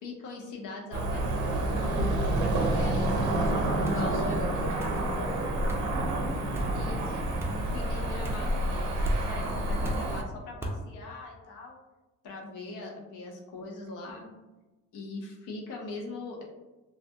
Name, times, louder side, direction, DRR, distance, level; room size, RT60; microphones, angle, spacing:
voice 1, 0.0-2.0 2.5-4.9 6.7-11.8 12.2-14.3 14.9-16.4, left 2 dB, 90° left, -1 dB, 0.7 m, -41 dB
Cricket / Motor vehicle (road), 0.9-10.2, right 1 dB, 75° right, 0.5 m, -28 dB
voice 2, 2.9-5.6 6.3-6.8, right 1 dB, 45° left, -3 dB, 1.0 m, -40 dB
sound 1, 3.9-4.1 4.8-5.0 5.7-5.9 6.5-6.8 7.4-7.6 8.2-8.5 9.0-9.2 9.8-10.1 10.6-10.8, equal, 10° right, 0.3 m, -37 dB
2.3 x 2.1 x 2.6 m, 1.1 s
cardioid pair, 90°, 30 cm